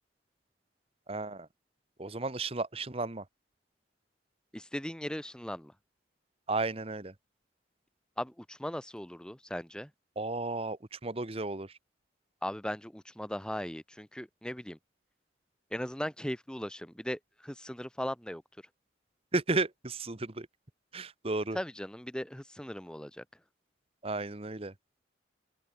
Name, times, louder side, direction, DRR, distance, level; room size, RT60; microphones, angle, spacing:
voice 1, 1.1-1.5 2.0-3.2 6.5-7.1 10.2-11.7 19.3-20.5 20.9-21.6 24.0-24.7, right 3 dB, 30° right, 1.2 m, -33 dB
voice 2, 4.5-5.7 8.2-9.9 12.4-14.8 15.7-18.4 21.5-23.2, equal, 5° left, 1.0 m, -38 dB
open air
head